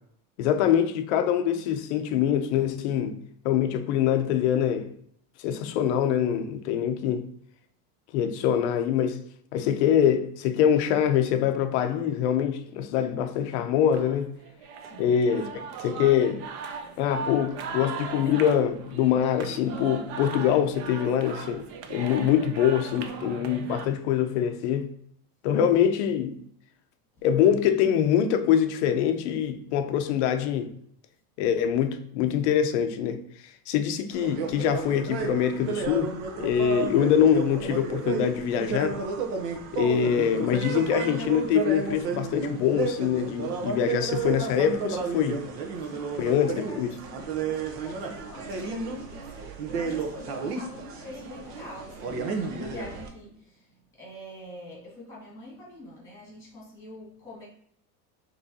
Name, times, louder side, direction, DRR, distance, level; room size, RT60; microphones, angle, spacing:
voice 1, 0.4-3.2 3.4-4.9 5.4-7.2 8.1-9.2 9.5-14.3 15.0-15.5 15.8-16.4 17.0-24.9 25.4-26.4 27.2-30.7 31.4-33.2 33.7-36.1 36.4-39.0 39.7-45.4 46.2-46.9, left 9 dB, 50° left, 0.4 m, -24 dB
sound 1, 13.9-23.9, right 6 dB, 45° right, 0.4 m, -38 dB
voice 2, 14.8-15.2 27.2-27.3 45.8-57.4, left 1 dB, 5° left, 1.6 m, -45 dB
sound 2, 34.1-53.1, right 5 dB, 80° right, 1.0 m, -32 dB
5.9 x 3.0 x 2.7 m
cardioid pair, 180°, 47 cm